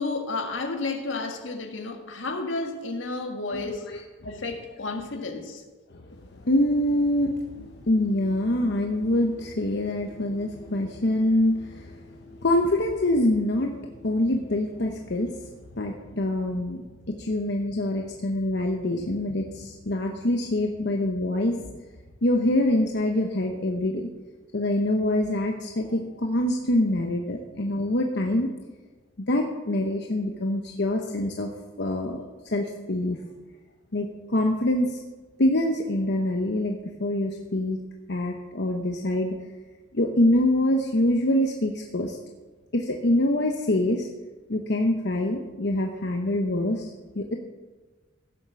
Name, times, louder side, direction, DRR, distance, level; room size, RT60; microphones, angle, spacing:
voice 1, 0.0-3.9 4.2-5.6, left 3 dB, 80° left, 1.7 m, -31 dB
voice 2, 3.5-4.0 6.1-21.7 22.2-24.1 24.5-28.5 29.3-31.5 31.8-33.2 33.9-35.0 35.4-37.8 38.1-39.3 39.9-42.2 42.7-44.1 44.5-47.4, left 1 dB, 60° left, 1.0 m, -25 dB
16.0 x 7.5 x 7.0 m
head